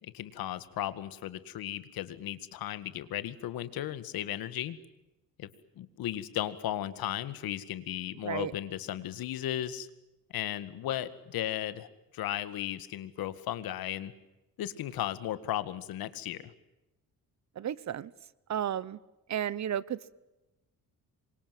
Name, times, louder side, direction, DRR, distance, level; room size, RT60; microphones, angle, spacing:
voice 1, 0.0-4.8 5.4-5.5 5.8-9.9 10.3-11.9 12.1-14.1 14.6-16.5, left 12 dB, 85° left, 13 dB, 2.0 m, -35 dB
voice 2, 17.6-18.1 18.5-19.0 19.3-20.1, right 10 dB, 50° right, 20 dB, 1.0 m, -33 dB
27.5 x 24.5 x 7.7 m, 0.97 s
cardioid pair, 125°, 35 cm